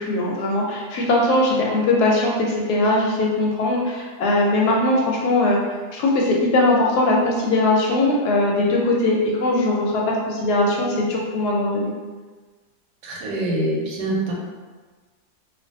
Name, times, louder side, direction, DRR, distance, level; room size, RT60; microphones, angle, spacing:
voice 1, 0.0-5.6 5.9-11.9, left 2 dB, 75° left, -2 dB, 1.0 m, -20 dB
voice 2, 13.0-14.3, right 1 dB, 85° right, -2 dB, 1.2 m, -24 dB
2.5 x 2.4 x 2.6 m, 1.4 s
omnidirectional pair, 1.8 m